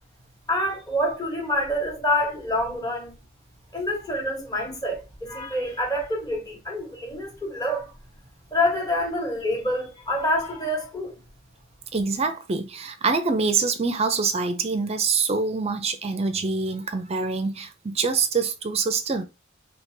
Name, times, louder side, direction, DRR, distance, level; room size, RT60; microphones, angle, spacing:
voice 1, 0.5-3.1 3.7-7.9 8.5-11.1, left 1 dB, 20° left, 1.2 m, -27 dB
voice 2, 11.9-19.2, right 4 dB, 30° right, 0.4 m, -25 dB
3.7 x 2.8 x 2.6 m
head